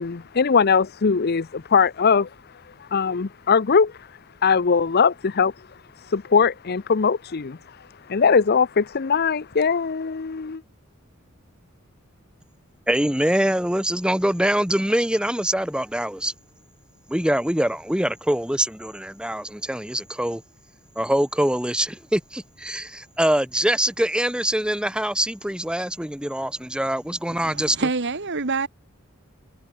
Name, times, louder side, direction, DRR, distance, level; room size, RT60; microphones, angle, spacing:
voice 1, 0.0-2.3 2.8-4.1 4.4-5.5 6.0-10.6, left 5 dB, 50° left, 0.6 m, -21 dB
voice 2, 12.9-16.3 17.1-20.4 20.9-27.9, right 1 dB, 5° right, 1.7 m, -24 dB
voice 3, 27.3-28.7, right 3 dB, 60° right, 1.5 m, -26 dB
head